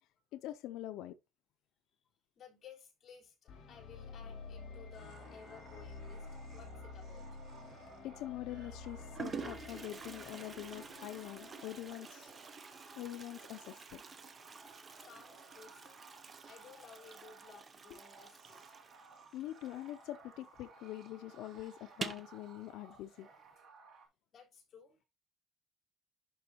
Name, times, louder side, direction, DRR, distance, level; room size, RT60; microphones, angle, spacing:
voice 1, 0.3-1.2 8.0-12.3 13.0-14.0 19.3-23.3, left 14 dB, 85° left, 0.5 m, -44 dB
voice 2, 2.4-7.4 14.9-16.0 16.5-18.6 22.9-23.0 24.3-25.0, left 6 dB, 35° left, 3.9 m, -57 dB
sound 1, 3.5-12.5, left 4 dB, 55° left, 4.2 m, -50 dB
sound 2, 4.9-24.1, right 4 dB, 55° right, 2.6 m, -58 dB
Toilet flush, 7.6-8.1 8.8-8.9 9.1-20.4 20.7-20.8 21.1-21.2 21.9-22.4, right 5 dB, 25° right, 0.7 m, -48 dB
11.0 x 5.1 x 2.9 m
cardioid pair, 165°, 0 cm